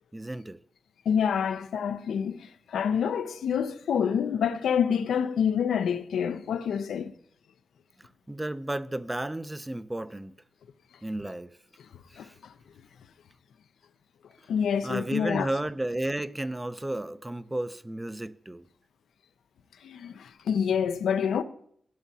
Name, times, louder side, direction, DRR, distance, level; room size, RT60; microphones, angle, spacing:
voice 1, 0.1-0.6 8.3-10.3 11.0-11.6 12.2-12.3 14.8-18.6, right 1 dB, 15° right, 0.4 m, -33 dB
voice 2, 1.1-7.1 12.2-12.5 14.5-15.5 19.8-21.4, left 7 dB, 90° left, 0.4 m, -27 dB
13.5 x 7.1 x 2.8 m
cardioid pair, 60°, 0 cm